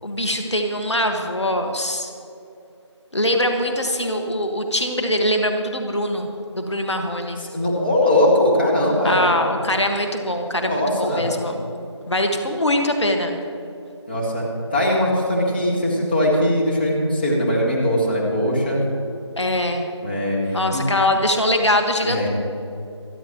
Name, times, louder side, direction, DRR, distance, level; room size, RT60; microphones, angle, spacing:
voice 1, 0.0-2.1 3.1-6.3 6.5-7.4 9.0-11.7 12.1-13.4 19.4-19.9 20.5-22.3, left 1 dB, 70° left, 4 dB, 1.7 m, -22 dB
voice 2, 7.5-9.3 10.6-11.3 14.1-14.5 14.7-18.8 20.0-20.8 22.0-22.3, left 1 dB, 20° left, -5 dB, 1.8 m, -20 dB
27.5 x 10.5 x 3.1 m, 2.7 s
figure-of-eight pair, 175°, 15 cm